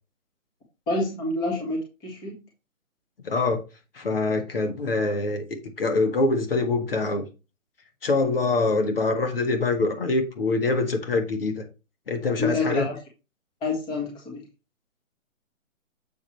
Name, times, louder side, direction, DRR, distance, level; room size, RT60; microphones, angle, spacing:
voice 1, 0.9-2.4 12.4-13.0 13.6-14.4, left 2 dB, 10° left, 0 dB, 1.7 m, -28 dB
voice 2, 3.2-3.6 3.9-7.3 8.0-11.7 12.1-12.9, left 3 dB, 40° left, 6 dB, 1.5 m, -24 dB
7.5 x 5.9 x 3.1 m, 0.28 s
hypercardioid pair, 160°, 42 cm